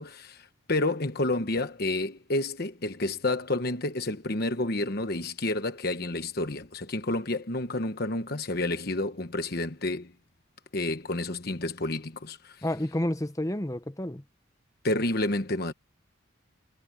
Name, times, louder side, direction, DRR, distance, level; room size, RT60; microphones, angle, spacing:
voice 1, 0.0-10.1 10.7-12.6 14.8-15.7, left 2 dB, 50° left, 1.2 m, -30 dB
voice 2, 12.6-14.2, left 1 dB, 15° left, 1.1 m, -30 dB
head